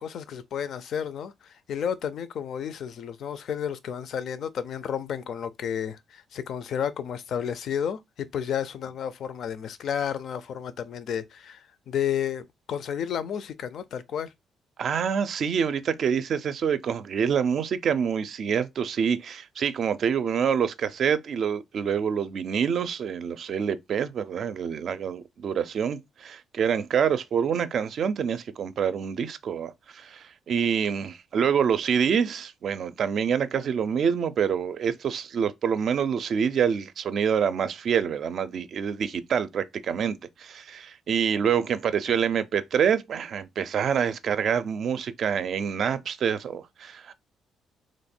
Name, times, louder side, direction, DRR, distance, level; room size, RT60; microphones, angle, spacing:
voice 1, 0.0-14.3, left 8 dB, 65° left, 0.4 m, -32 dB
voice 2, 14.8-47.1, right 7 dB, 60° right, 0.4 m, -26 dB
3.0 x 2.2 x 4.2 m
cardioid pair, 90°, 0 cm